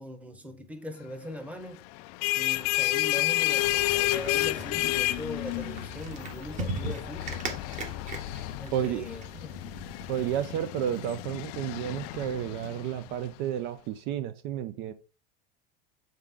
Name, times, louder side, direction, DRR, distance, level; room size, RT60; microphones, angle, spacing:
voice 1, 0.0-1.8 2.4-7.5 8.6-9.5, left 1 dB, 5° right, 0.9 m, -41 dB
sound 1, 2.0-13.3, left 18 dB, 70° left, 0.4 m, -31 dB
sound 2, 3.6-10.5, right 1 dB, 35° right, 1.3 m, -39 dB
voice 2, 8.7-9.1 10.1-14.9, right 10 dB, 55° right, 0.5 m, -31 dB
7.3 x 3.6 x 3.7 m
supercardioid pair, 140°, 21 cm